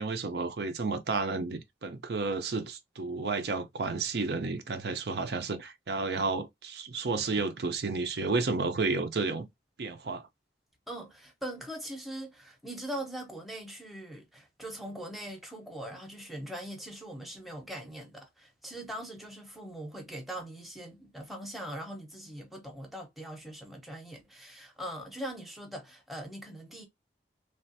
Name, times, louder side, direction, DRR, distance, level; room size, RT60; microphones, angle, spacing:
voice 1, 0.0-9.5 9.8-10.3, right 3 dB, 70° right, 0.5 m, -31 dB
voice 2, 10.9-26.9, right 1 dB, ahead, 0.7 m, -41 dB
3.2 x 2.4 x 2.6 m
head